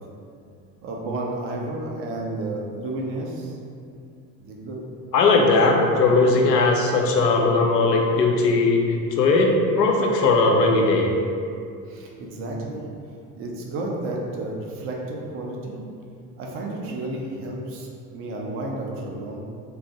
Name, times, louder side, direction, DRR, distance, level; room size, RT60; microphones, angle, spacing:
voice 1, 0.8-3.6 4.4-4.8 11.9-12.8 13.3-15.8 16.4-19.4, right 2 dB, 30° right, -1 dB, 0.5 m, -31 dB
voice 2, 5.1-11.1, left 3 dB, 80° left, 1 dB, 0.6 m, -19 dB
3.3 x 2.5 x 2.8 m, 2.4 s
figure-of-eight pair, 65°, 50 cm